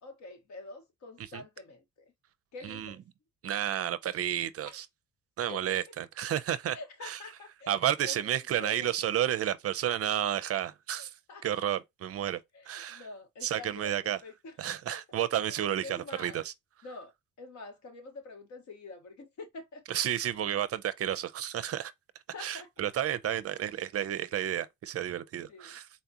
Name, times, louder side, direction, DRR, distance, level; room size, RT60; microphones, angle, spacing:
voice 1, 0.0-2.1 2.5-3.0 4.6-4.8 5.4-5.7 6.7-8.9 11.0-11.5 12.5-13.9 14.2-14.5 14.9-15.0 15.8-16.4 16.8-17.1 17.4-19.8 22.3-22.7 25.5-25.7, left 3 dB, 70° left, 1.3 m, -46 dB
voice 2, 2.6-2.9 3.4-4.9 5.4-7.2 7.7-11.1 11.4-12.4 12.7-13.0 13.4-14.2 14.6-16.5 19.9-21.9 22.4-25.9, right 11 dB, 50° right, 0.5 m, -31 dB
4.1 x 2.4 x 2.7 m
cardioid pair, 90°, 30 cm